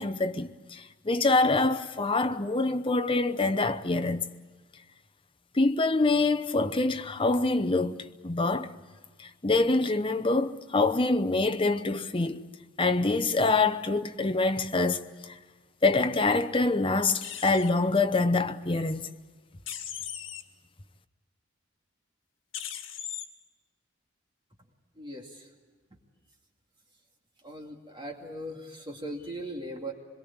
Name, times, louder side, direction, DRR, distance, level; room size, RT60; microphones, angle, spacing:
voice 1, 0.0-4.2 5.5-8.7 9.2-12.5 12.8-15.4 15.8-19.1, left 3 dB, 25° left, 0.8 m, -25 dB
sound 1, 17.1-17.7 19.7-20.4 22.5-23.3, left 9 dB, 80° left, 1.8 m, -38 dB
voice 2, 25.0-25.5 27.4-29.9, right 1 dB, 25° right, 2.3 m, -39 dB
25.5 x 22.0 x 8.7 m
head